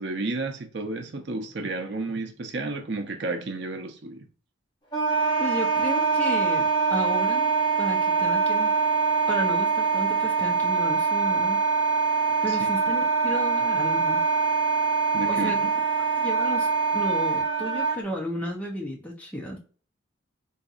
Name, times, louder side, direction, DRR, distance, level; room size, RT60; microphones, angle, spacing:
voice 1, 0.0-4.2 12.5-12.6 15.1-15.5, right 3 dB, 60° right, 0.6 m, -32 dB
Wind instrument woodwind instrument, 4.9-18.0, right 5 dB, 25° left, 1.5 m, -24 dB
voice 2, 5.4-7.5 7.8-8.7 9.3-11.6 12.4-14.2 15.3-15.6 16.2-19.6, equal, 5° left, 0.7 m, -33 dB
4.0 x 2.6 x 2.5 m
head